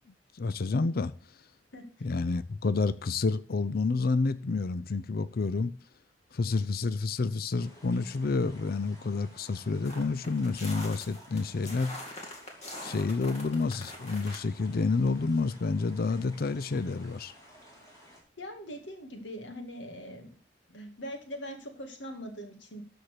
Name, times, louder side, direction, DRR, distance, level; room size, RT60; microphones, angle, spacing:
voice 1, 0.4-1.1 2.0-5.7 6.3-11.9 12.8-17.3, left 3 dB, 55° left, 0.5 m, -29 dB
voice 2, 1.7-2.1 18.4-20.4 20.7-22.8, equal, 75° left, 2.0 m, -42 dB
sound 1, 7.6-18.2, equal, 20° left, 3.6 m, -55 dB
sound 2, 9.8-14.4, left 1 dB, 35° left, 2.4 m, -43 dB
13.0 x 4.4 x 6.6 m
head